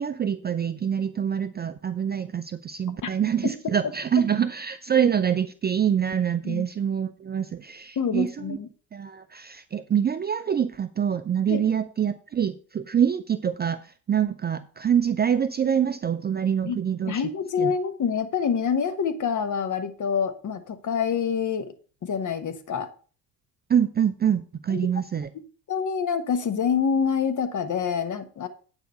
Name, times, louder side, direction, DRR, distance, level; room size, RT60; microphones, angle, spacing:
voice 1, 0.0-8.6 8.9-17.2 17.6-17.7 23.7-25.3, right 8 dB, 20° right, 12 dB, 0.5 m, -25 dB
voice 2, 8.0-8.7 11.5-11.6 16.6-16.8 17.1-21.7 22.0-22.9 24.7-24.8 25.7-28.5, left 6 dB, 40° left, 10 dB, 1.3 m, -26 dB
9.2 x 4.9 x 5.4 m, 0.40 s
hypercardioid pair, 55°, 46 cm